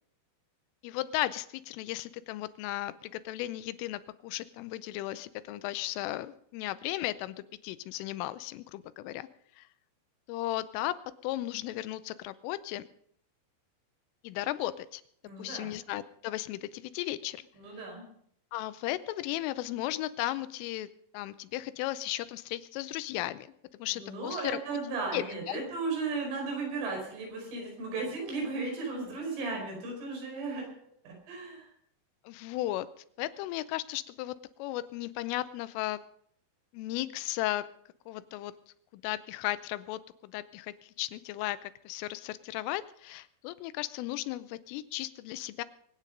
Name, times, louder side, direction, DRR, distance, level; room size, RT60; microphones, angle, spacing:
voice 1, 0.8-9.3 9.6-9.7 10.3-12.9 14.2-15.0 15.4-17.4 18.5-20.9 21.1-23.5 23.8-24.8 25.1-25.6 32.3-32.9 33.2-34.3 34.6-36.0 36.7-37.7 38.1-38.5 38.9-45.6, left 15 dB, 90° left, 14 dB, 3.3 m, -35 dB
voice 2, 15.2-15.7 17.6-18.0 23.9-30.7 31.0-31.7, right 3 dB, 80° right, 0 dB, 7.4 m, -35 dB
23.5 x 9.1 x 5.2 m, 0.64 s
omnidirectional pair, 5.6 m